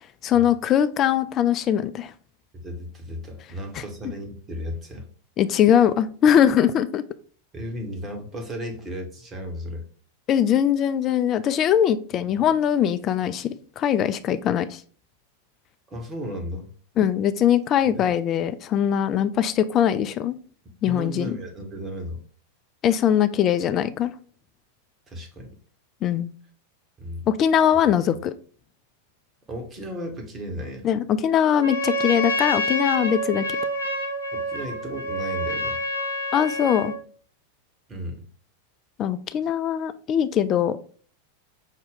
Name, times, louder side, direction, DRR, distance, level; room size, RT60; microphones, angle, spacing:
voice 1, 0.2-2.1 5.4-7.0 10.3-14.8 17.0-20.4 20.8-21.4 22.8-24.1 26.0-26.3 27.3-28.3 30.8-33.4 36.3-36.9 39.0-40.8, left 9 dB, 30° left, 12 dB, 0.3 m, -21 dB
voice 2, 2.5-5.1 7.5-9.8 12.1-12.4 15.9-16.7 17.8-18.1 20.8-22.2 25.1-25.5 27.0-27.3 29.5-30.9 34.3-35.8 37.9-38.3, equal, 20° right, 3 dB, 1.1 m, -35 dB
Trumpet, 31.5-37.0, left 1 dB, 90° right, 1.2 m, -27 dB
5.5 x 2.1 x 3.6 m, 0.43 s
figure-of-eight pair, 90°, 0 cm